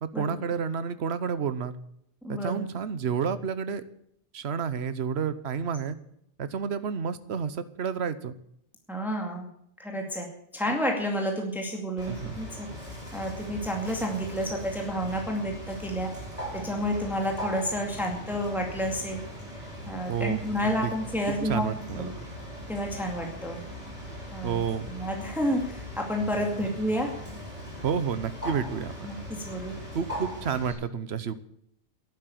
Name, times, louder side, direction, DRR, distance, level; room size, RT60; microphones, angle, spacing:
voice 1, 0.0-1.7 2.3-3.8 4.3-6.0 6.4-8.3 12.1-12.3 20.1-20.9 21.3-22.1 24.4-24.9 27.8-28.9 29.9-31.3, right 7 dB, 65° right, 13 dB, 1.2 m, -30 dB
voice 2, 2.2-2.7 8.9-9.5 9.8-10.3 10.5-12.7 13.1-16.1 16.5-19.2 19.9-22.1 22.7-23.6 24.3-24.6 24.9-27.1 29.0-29.7, equal, ahead, 1 dB, 2.3 m, -30 dB
Bird, 12.0-30.7, equal, 35° right, 6.0 m, -40 dB
11.5 x 9.2 x 9.3 m, 0.72 s
omnidirectional pair, 1.2 m